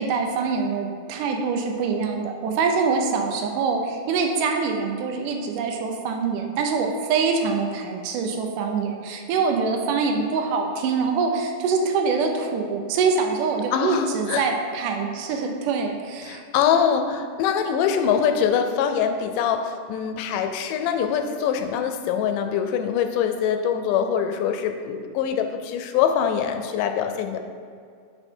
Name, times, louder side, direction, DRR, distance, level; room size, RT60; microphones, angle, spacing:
voice 1, 0.0-16.4, right 5 dB, 80° right, 3 dB, 2.2 m, -24 dB
voice 2, 13.7-14.4 16.2-27.4, left 8 dB, 85° left, 7 dB, 2.1 m, -23 dB
6.8 x 4.4 x 4.4 m, 2.2 s
omnidirectional pair, 3.7 m